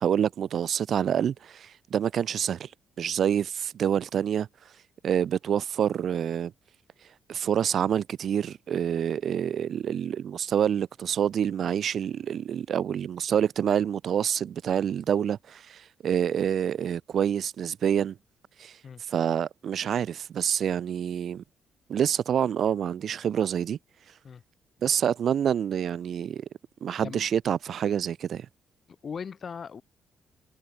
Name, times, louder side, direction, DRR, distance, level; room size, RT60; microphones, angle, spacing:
voice 1, 0.0-2.7 3.0-4.5 5.0-6.5 7.3-18.2 18.6-18.8 19.1-21.4 21.9-23.8 24.8-26.5 26.8-28.5, right 9 dB, 60° right, 0.4 m, -27 dB
voice 2, 27.0-27.3 29.0-29.8, left 6 dB, 45° left, 0.9 m, -38 dB
cardioid pair, 90°, 0 cm